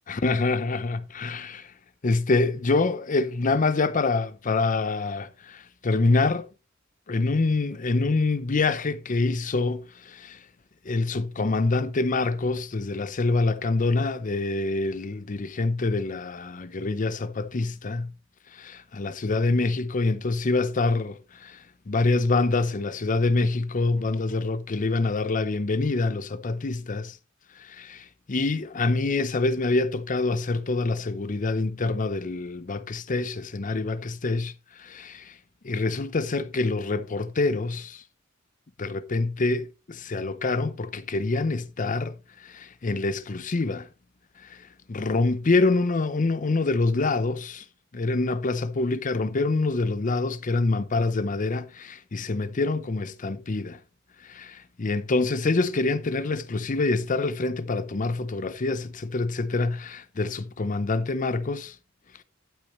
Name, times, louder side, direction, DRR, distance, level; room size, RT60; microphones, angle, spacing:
voice 1, 0.1-1.7 2.0-6.4 7.1-10.4 10.9-18.1 18.5-21.6 21.9-27.2 27.6-34.5 34.8-35.3 35.6-38.0 38.8-42.1 42.4-43.9 44.5-44.6 44.9-47.6 47.9-53.8 54.2-61.7, left 3 dB, 40° left, 0.6 m, -26 dB
12.0 x 8.2 x 3.0 m
head